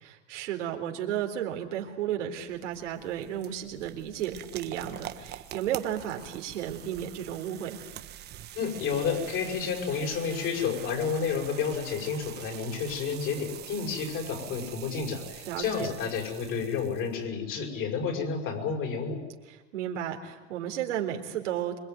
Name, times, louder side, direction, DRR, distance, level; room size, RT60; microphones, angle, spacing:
voice 1, 0.0-7.8 15.5-15.9 19.5-21.8, right 10 dB, 80° right, 3 dB, 3.9 m, -33 dB
sound 1, 2.3-17.2, right 12 dB, 30° right, 1.3 m, -45 dB
voice 2, 8.5-19.2, left 6 dB, 35° left, 3 dB, 6.6 m, -30 dB
26.0 x 22.5 x 9.5 m, 1.2 s
supercardioid pair, 150°, 36 cm